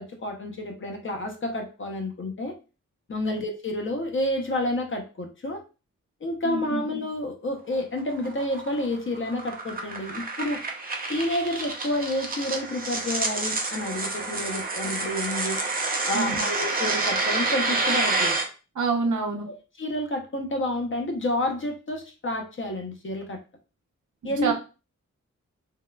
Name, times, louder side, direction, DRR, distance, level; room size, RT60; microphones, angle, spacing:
voice 1, 0.0-2.5 3.1-5.6 6.2-10.6 11.1-15.6 16.1-18.4 19.8-23.4 24.2-24.5, left 1 dB, 40° left, 3 dB, 0.6 m, -29 dB
voice 2, 6.4-6.8 16.1-16.4 18.8-19.5 24.2-24.5, right 4 dB, 80° right, 2 dB, 0.7 m, -27 dB
sound 1, 7.7-18.4, right 3 dB, 30° right, 0.5 m, -28 dB
3.5 x 2.1 x 2.2 m, 0.32 s
wide cardioid pair, 140°, 30 cm